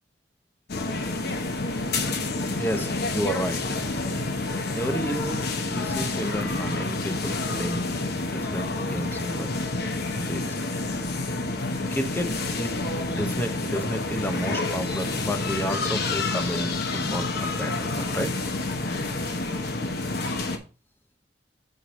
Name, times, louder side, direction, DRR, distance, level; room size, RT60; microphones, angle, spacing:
sound 1, 0.7-20.6, left 2 dB, 60° left, 0.9 m, -28 dB
voice 1, 2.6-3.8 4.7-7.8 8.2-9.5 10.2-10.5 10.9-11.0 11.9-18.3, equal, 10° left, 0.8 m, -32 dB
7.0 x 4.6 x 4.1 m
head